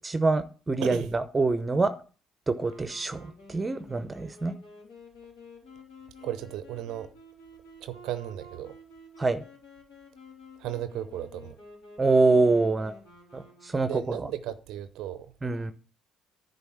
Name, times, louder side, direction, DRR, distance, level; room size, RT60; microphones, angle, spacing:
voice 1, 0.0-1.9 2.5-4.5 9.2-9.4 12.0-12.9 13.3-14.3 15.4-15.7, right 3 dB, 25° right, 0.7 m, -25 dB
Wind instrument woodwind instrument, 2.6-14.3, left 2 dB, 65° left, 3.3 m, -51 dB
voice 2, 6.2-7.1 7.8-8.8 10.6-11.6 13.8-15.3, right 12 dB, 60° right, 0.6 m, -35 dB
10.5 x 4.0 x 7.0 m
figure-of-eight pair, 50°, 0 cm